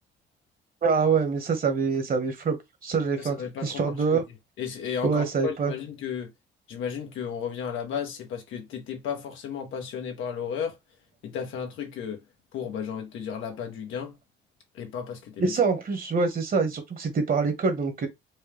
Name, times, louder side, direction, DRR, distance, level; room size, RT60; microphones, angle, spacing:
voice 1, 0.8-2.6 2.8-3.4 3.6-4.2 5.0-5.7 15.4-18.1, right 5 dB, 45° right, 1.3 m, -25 dB
voice 2, 3.2-4.2 4.6-6.3 6.7-10.8 11.2-12.2 12.5-14.2 14.7-15.5, left 7 dB, 85° left, 1.2 m, -34 dB
4.4 x 2.2 x 3.4 m
cardioid pair, 90°, 20 cm